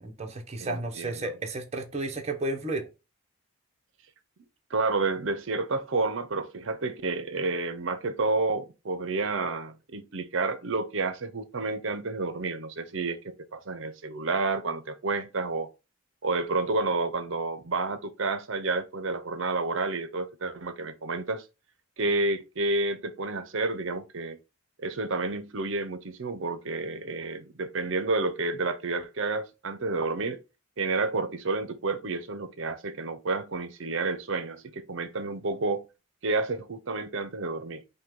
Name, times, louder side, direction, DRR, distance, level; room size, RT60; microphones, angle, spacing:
voice 1, 0.0-2.9, right 2 dB, 30° right, 0.8 m, -32 dB
voice 2, 0.6-1.3 4.7-15.7 16.2-21.4 22.0-24.4 24.8-30.4 30.8-35.9 36.2-37.8, right 3 dB, 60° right, 0.7 m, -30 dB
5.4 x 2.3 x 3.6 m
head